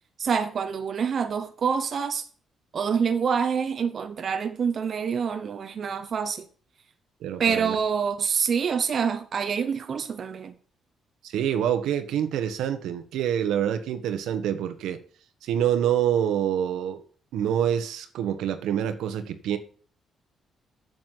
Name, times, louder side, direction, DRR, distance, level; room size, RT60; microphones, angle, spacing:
voice 1, 0.2-2.2 2.7-6.5 7.4-10.5, right 6 dB, 50° right, 0.9 m, -26 dB
voice 2, 7.2-7.8 11.2-15.0 15.4-17.0 17.3-19.6, right 9 dB, 85° right, 1.3 m, -26 dB
7.8 x 7.3 x 7.8 m
cardioid pair, 90°, 0 cm